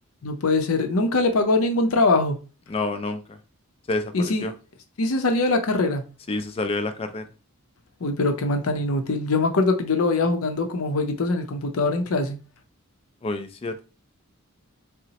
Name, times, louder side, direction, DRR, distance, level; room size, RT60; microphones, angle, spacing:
voice 1, 0.2-2.4 4.1-4.4 5.0-6.0 8.0-12.4, left 2 dB, 75° left, 0.6 m, -22 dB
voice 2, 2.7-3.4 3.9-4.5 6.3-7.3 13.2-13.9, left 2 dB, 25° left, 0.3 m, -28 dB
3.9 x 2.1 x 2.8 m
head